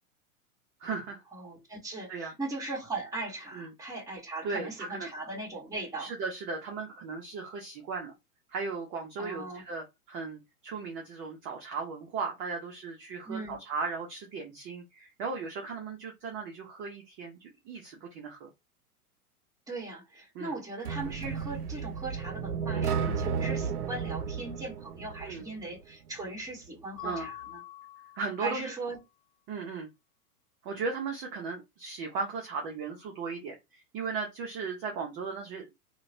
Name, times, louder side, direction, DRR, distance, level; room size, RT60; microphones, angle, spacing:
voice 1, 0.8-1.2 2.1-2.3 3.5-3.7 4.4-5.1 6.0-8.1 8.5-18.5 20.3-20.6 22.7-23.2 25.2-25.5 27.0-27.3 28.1-28.7 29.5-29.9 30.6-35.8, right 4 dB, 25° right, 0.5 m, -37 dB
voice 2, 1.3-6.1 9.2-9.6 13.2-13.6 19.7-27.6 28.4-29.0, right 2 dB, 10° right, 1.2 m, -39 dB
sound 1, 20.9-25.8, right 6 dB, 90° right, 0.5 m, -33 dB
Mallet percussion, 27.0-28.8, left 16 dB, 60° left, 0.7 m, -45 dB
2.9 x 2.1 x 2.5 m
hypercardioid pair, 115°, 45 cm